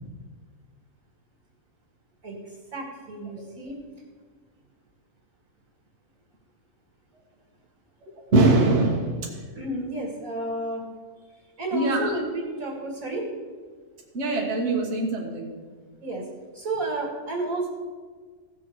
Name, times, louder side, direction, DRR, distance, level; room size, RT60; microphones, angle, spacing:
voice 1, 2.2-3.8 9.6-10.8 11.6-13.3 16.0-16.2 16.5-17.7, right 2 dB, 65° right, -1 dB, 2.5 m, -31 dB
voice 2, 8.3-9.4 11.7-12.1 14.1-15.5, right 2 dB, 45° right, -1 dB, 1.7 m, -22 dB
17.0 x 6.9 x 4.7 m, 1.5 s
omnidirectional pair, 1.6 m